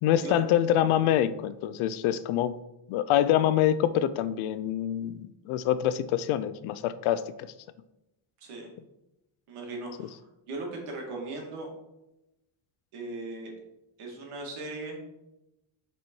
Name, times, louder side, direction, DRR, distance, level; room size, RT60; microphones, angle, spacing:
voice 1, 0.0-2.6 2.9-7.5, left 11 dB, 75° left, 14 dB, 0.6 m, -25 dB
voice 2, 8.4-8.7 9.5-10.2 10.5-11.7 12.9-13.5 14.0-15.0, right 2 dB, 85° right, 0 dB, 2.2 m, -38 dB
6.1 x 4.4 x 4.5 m, 0.92 s
cardioid pair, 165°, 49 cm